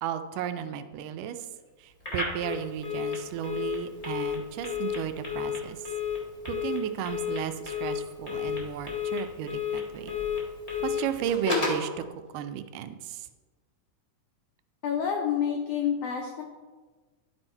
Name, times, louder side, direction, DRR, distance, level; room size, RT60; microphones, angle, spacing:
voice 1, 0.0-1.5 1.8-5.8 6.4-10.1 10.8-12.1 12.3-13.3, right 10 dB, 85° right, 9 dB, 2.1 m, -34 dB
Telephone, 2.0-11.9, left 6 dB, 35° left, 0.5 m, -32 dB
voice 2, 14.8-16.4, left 8 dB, 90° left, 1 dB, 1.3 m, -28 dB
11.5 x 4.5 x 4.3 m, 1.3 s
omnidirectional pair, 3.7 m